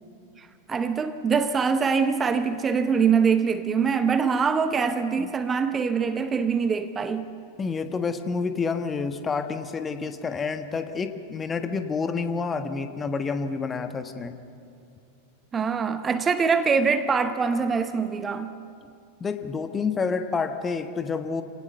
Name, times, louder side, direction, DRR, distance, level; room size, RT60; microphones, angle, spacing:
voice 1, 0.4-7.3 15.5-18.5, right 6 dB, 20° right, 0.9 m, -24 dB
voice 2, 7.6-14.3 19.2-21.4, left 5 dB, 20° left, 1.4 m, -28 dB
28.5 x 18.0 x 6.7 m
figure-of-eight pair, 90°, 0 cm